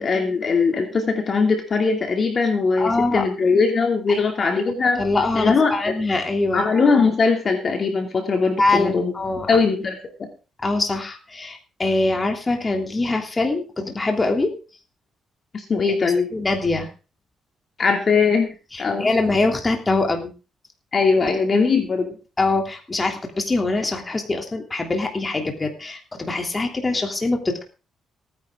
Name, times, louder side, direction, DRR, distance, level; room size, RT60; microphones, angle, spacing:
voice 1, 0.0-5.0 5.3-5.9 6.5-9.1 9.5-10.3 15.5-16.3 17.8-19.1 20.9-22.1, left 4 dB, 45° left, 4 dB, 2.7 m, -20 dB
voice 2, 2.8-3.2 4.1-4.2 5.0-6.7 8.6-9.6 10.6-14.5 16.3-16.9 18.7-20.3 22.4-27.6, left 2 dB, 25° left, 3 dB, 3.1 m, -23 dB
17.5 x 10.0 x 3.8 m, 0.34 s
cardioid pair, 90°, 0 cm